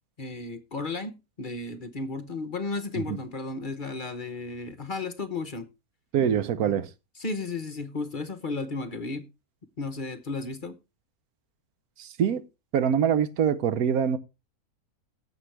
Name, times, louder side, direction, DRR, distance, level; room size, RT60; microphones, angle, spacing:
voice 1, 0.2-5.7 7.2-9.3 9.8-10.8, left 3 dB, 40° left, 0.9 m, -34 dB
voice 2, 6.1-6.9 12.0-12.4 12.7-14.2, right 8 dB, 80° right, 1.3 m, -24 dB
17.5 x 7.2 x 3.3 m
omnidirectional pair, 1.5 m